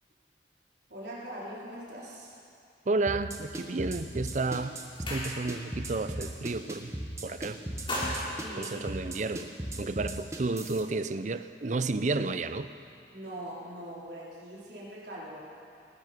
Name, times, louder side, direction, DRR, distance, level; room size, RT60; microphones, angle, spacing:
voice 1, 0.9-2.3 8.3-8.8 13.1-15.5, right 1 dB, 70° right, -6 dB, 4.0 m, -42 dB
voice 2, 2.9-4.7 5.1-6.9 7.2-7.6 8.6-9.5 9.8-12.7, right 3 dB, 45° right, 12 dB, 0.5 m, -31 dB
sound 1, 3.1-10.8, right 1 dB, 15° right, 1.2 m, -37 dB
sound 2, 4.9-5.8 6.1-6.4 6.7-7.3 7.6-9.5, left 1 dB, 30° left, 3.8 m, -37 dB
20.0 x 12.5 x 5.2 m, 2.5 s
head